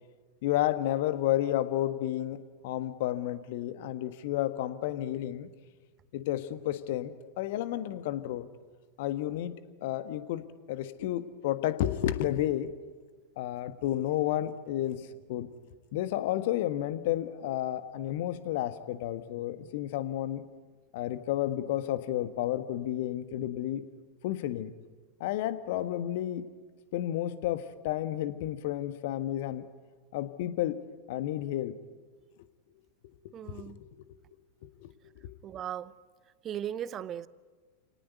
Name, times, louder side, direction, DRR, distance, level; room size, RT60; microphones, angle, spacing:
voice 1, 0.4-5.5 6.1-8.5 9.0-9.5 9.8-12.7 13.4-15.5 15.9-20.4 20.9-23.8 24.2-24.7 25.2-26.5 26.9-29.7 30.1-30.8 31.1-31.7 33.5-33.9 34.6-35.4, left 13 dB, 50° left, 1.5 m, -31 dB
voice 2, 33.3-33.8 35.4-35.9 36.4-37.3, right 10 dB, 30° right, 0.8 m, -37 dB
29.5 x 18.5 x 9.4 m
figure-of-eight pair, 90°, 0 cm